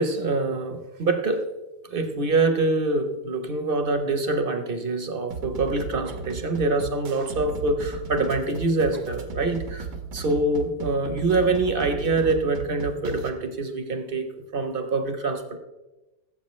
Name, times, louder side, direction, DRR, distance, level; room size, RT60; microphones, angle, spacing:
voice 1, 0.0-1.5 1.9-9.9 10.1-15.6, right 3 dB, 45° right, 7 dB, 0.8 m, -25 dB
sound 1, 5.3-13.3, right 5 dB, 85° right, 1.7 m, -36 dB
17.0 x 7.7 x 3.1 m, 1.1 s
omnidirectional pair, 1.8 m